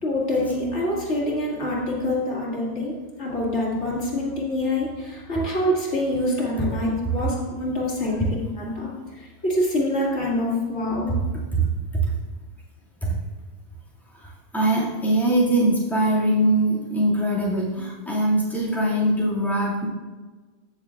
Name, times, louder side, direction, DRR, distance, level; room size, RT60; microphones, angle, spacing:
voice 1, 0.0-8.9 9.2-11.1, left 1 dB, 80° left, -5 dB, 2.3 m, -25 dB
voice 2, 14.2-19.9, right 1 dB, ahead, -7 dB, 2.0 m, -22 dB
15.0 x 6.6 x 2.4 m, 1.3 s
omnidirectional pair, 1.2 m